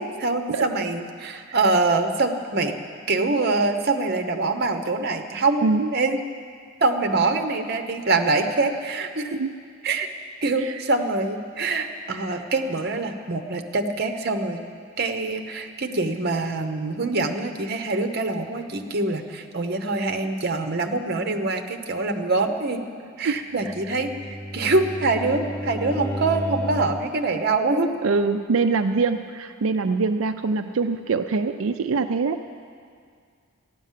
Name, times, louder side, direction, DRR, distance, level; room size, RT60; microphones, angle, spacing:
voice 1, 0.0-2.8 3.1-5.6 5.9-6.2 6.8-9.4 9.8-10.1 10.4-14.6 15.0-22.8 23.2-24.1 24.5-27.9, right 3 dB, 50° right, 6 dB, 1.0 m, -24 dB
voice 2, 23.2-23.7 28.0-32.4, right 4 dB, 90° right, 6 dB, 0.5 m, -24 dB
Bowed string instrument, 23.6-27.2, equal, 5° left, 1.1 m, -32 dB
14.5 x 10.5 x 7.5 m, 2.1 s
head